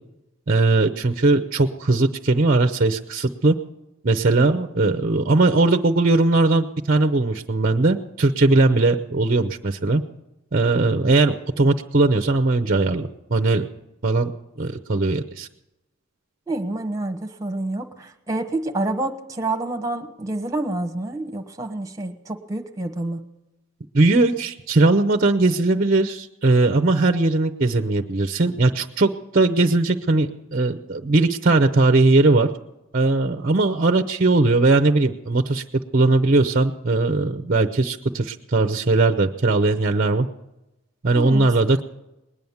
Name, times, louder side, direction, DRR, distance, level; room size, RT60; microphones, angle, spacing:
voice 1, 0.5-3.5 4.0-10.0 10.5-13.6 14.0-14.3 14.6-15.5 23.9-32.5 32.9-35.6 35.9-40.3 41.0-41.8, right 2 dB, 40° right, 7 dB, 0.6 m, -19 dB
voice 2, 16.5-23.2 41.1-41.5, right 2 dB, 15° right, 5 dB, 1.2 m, -28 dB
20.0 x 9.4 x 7.1 m, 0.94 s
head